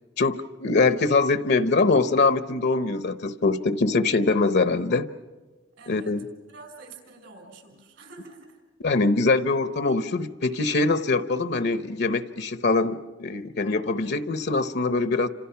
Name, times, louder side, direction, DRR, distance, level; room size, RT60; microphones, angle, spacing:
voice 1, 0.2-5.1 5.9-6.2 8.8-15.3, left 3 dB, 60° left, 11 dB, 0.9 m, -23 dB
voice 2, 5.8-8.6, right 3 dB, 75° right, 5 dB, 5.5 m, -47 dB
29.5 x 27.0 x 5.8 m, 1.3 s
head